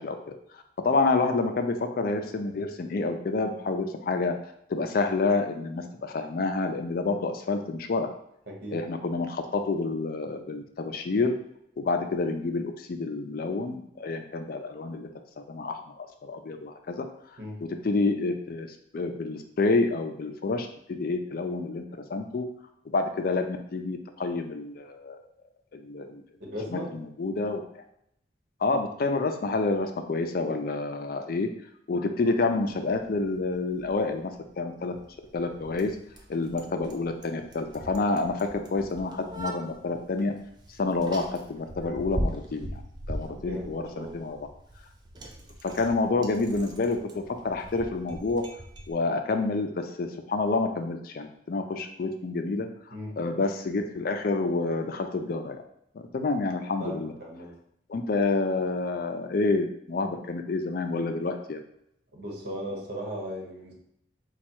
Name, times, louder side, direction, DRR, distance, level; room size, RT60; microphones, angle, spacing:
voice 1, 0.0-4.3 4.7-8.1 8.7-11.3 11.8-15.1 15.5-17.1 17.6-18.7 18.9-22.5 22.9-25.2 25.7-26.2 26.7-27.8 28.6-31.5 31.9-34.3 34.6-34.9 35.3-36.0 36.3-40.3 40.8-42.8 43.1-44.4 45.6-48.5 48.9-52.7 53.2-55.6 56.1-57.1 57.9-61.6, left 3 dB, 55° left, 6 dB, 0.4 m, -28 dB
voice 2, 8.5-8.8 17.4-17.6 26.4-27.0 43.3-44.3 52.9-53.1 56.8-57.5 62.1-63.7, equal, 65° right, -2 dB, 1.2 m, -37 dB
Bicycle, 32.6-48.9, equal, 25° right, 0.5 m, -41 dB
4.2 x 2.3 x 4.4 m, 0.73 s
head